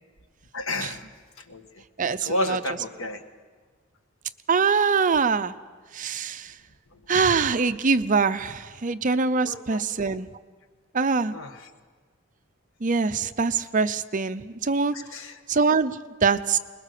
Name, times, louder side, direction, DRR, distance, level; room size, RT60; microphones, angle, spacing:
voice 1, 0.5-1.0 1.5-1.6 2.2-3.2 9.4-9.8 11.3-11.6 14.9-15.4, left 1 dB, 85° left, 7 dB, 1.5 m, -31 dB
voice 2, 2.0-2.6 4.5-5.6 5.9-6.5 7.1-10.3 10.9-11.3 12.8-14.9 15.5-16.6, right 5 dB, 40° right, 11 dB, 0.6 m, -23 dB
21.5 x 20.5 x 6.7 m, 1.5 s
head